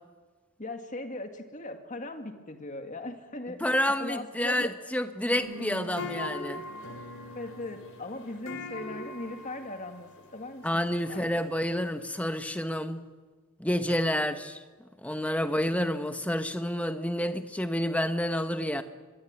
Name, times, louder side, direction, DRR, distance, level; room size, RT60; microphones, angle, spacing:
voice 1, 0.6-3.6 4.0-4.7 7.4-11.4, left 2 dB, 35° left, 6 dB, 2.2 m, -39 dB
voice 2, 3.6-6.6 10.6-13.0 13.6-14.6 15.0-18.8, equal, 5° left, 9 dB, 1.1 m, -29 dB
sound 1, 5.3-12.0, left 1 dB, 65° left, 3.7 m, -41 dB
23.0 x 22.5 x 9.0 m, 1.4 s
head